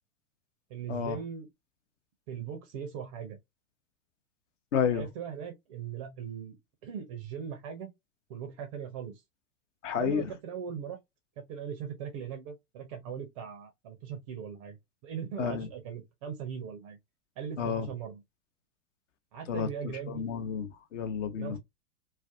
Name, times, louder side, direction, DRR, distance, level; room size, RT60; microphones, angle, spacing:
voice 1, 0.7-1.5 2.3-3.4 4.9-6.6 6.8-7.9 8.3-9.2 10.0-11.0 11.4-14.8 15.0-17.0 17.4-18.2 19.3-20.3 21.4-21.6, right 8 dB, 25° right, 0.4 m, -39 dB
voice 2, 4.7-5.0 9.8-10.3 15.4-15.7 17.6-17.9 19.5-19.7 20.1-21.6, left 7 dB, 55° left, 0.7 m, -30 dB
2.4 x 2.1 x 2.5 m
figure-of-eight pair, 100°, 45 cm